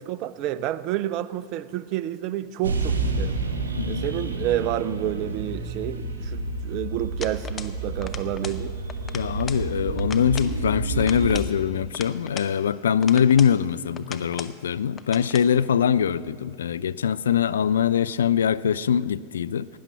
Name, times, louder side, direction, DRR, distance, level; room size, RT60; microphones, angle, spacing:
voice 1, 0.0-3.4 3.9-8.8, right 13 dB, 40° right, 16 dB, 0.5 m, -29 dB
sound 1, 2.6-11.4, right 3 dB, 70° right, 1.3 m, -29 dB
sound 2, 7.2-7.8 8.0-8.6 8.9-9.7 10.0-10.6 11.0-12.5 13.0-13.6 14.0-14.6 15.0-15.5, left 6 dB, 20° left, 0.7 m, -39 dB
voice 2, 9.1-19.7, left 8 dB, 65° left, 16 dB, 0.3 m, -23 dB
16.5 x 10.5 x 5.7 m, 2.2 s
figure-of-eight pair, 90°, 0 cm